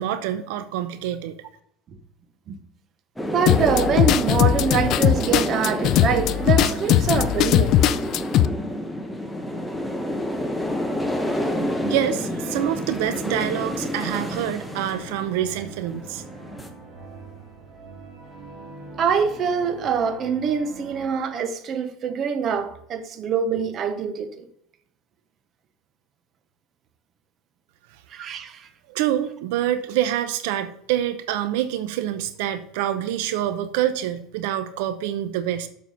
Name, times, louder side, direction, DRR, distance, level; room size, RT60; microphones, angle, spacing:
voice 1, 0.0-1.4 11.8-16.2 28.9-35.7, right 11 dB, 80° right, 0.7 m, -26 dB
sound 1, 3.2-16.7, left 1 dB, 5° left, 0.9 m, -29 dB
voice 2, 3.3-7.8 19.0-24.5 28.1-28.7, right 6 dB, 35° right, 0.9 m, -24 dB
sound 2, 3.5-8.5, left 12 dB, 45° left, 0.4 m, -19 dB
sound 3, 4.6-21.2, right 3 dB, 20° right, 2.4 m, -43 dB
7.4 x 6.0 x 5.5 m
cardioid pair, 150°, 0 cm